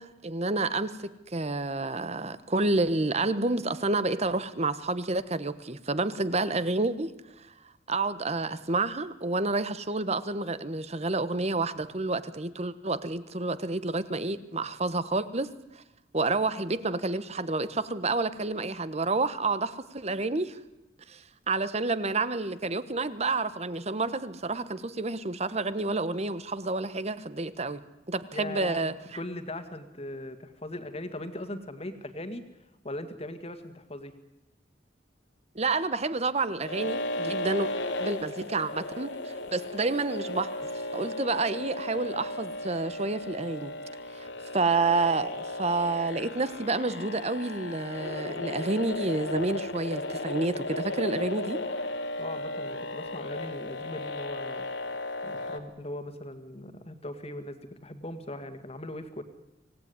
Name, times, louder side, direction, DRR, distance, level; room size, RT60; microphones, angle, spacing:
voice 1, 0.0-7.1 7.9-15.5 16.1-20.6 21.1-27.8 28.1-28.9 35.5-37.7 38.0-40.5 40.9-43.7 44.1-44.3 44.5-51.6, right 3 dB, 35° right, 14 dB, 1.2 m, -29 dB
voice 2, 28.3-32.4 32.8-34.1 52.2-54.7 55.2-59.2, left 1 dB, 35° left, 9 dB, 2.1 m, -39 dB
sound 1, 36.6-55.6, left 2 dB, 75° left, 2.2 m, -35 dB
25.5 x 18.0 x 9.7 m, 0.95 s
head